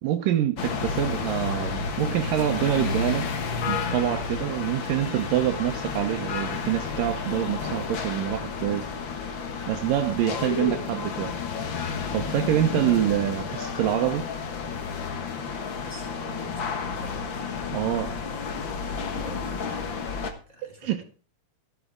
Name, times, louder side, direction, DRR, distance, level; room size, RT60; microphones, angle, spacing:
voice 1, 0.0-3.3 3.7-8.9 9.7-11.3 12.1-14.3 17.7-18.1 20.8-21.0, right 12 dB, 75° right, 2.4 m, -26 dB
sound 1, 0.6-20.3, left 5 dB, 55° left, 1.4 m, -31 dB
voice 2, 7.7-8.0 15.8-17.8 18.8-20.0 20.5-21.0, left 1 dB, 10° left, 4.3 m, -47 dB
13.0 x 12.5 x 3.6 m
omnidirectional pair, 4.2 m